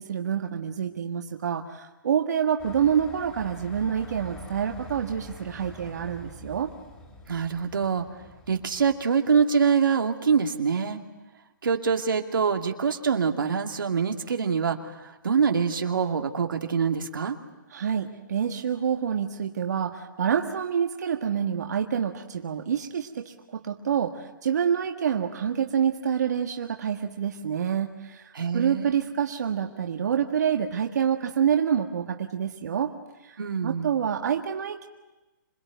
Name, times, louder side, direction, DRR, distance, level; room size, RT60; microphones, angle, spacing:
voice 1, 0.0-6.7 17.7-32.9 33.2-34.9, right 8 dB, 55° right, 4 dB, 1.7 m, -27 dB
sound 1, 2.6-9.1, left 1 dB, 10° left, 2.7 m, -46 dB
voice 2, 7.3-8.1 8.5-11.0 11.6-17.4 28.3-28.9 33.4-33.9, right 6 dB, 85° right, 4 dB, 2.5 m, -25 dB
26.5 x 21.0 x 9.3 m, 1.1 s
hypercardioid pair, 170°, 11 cm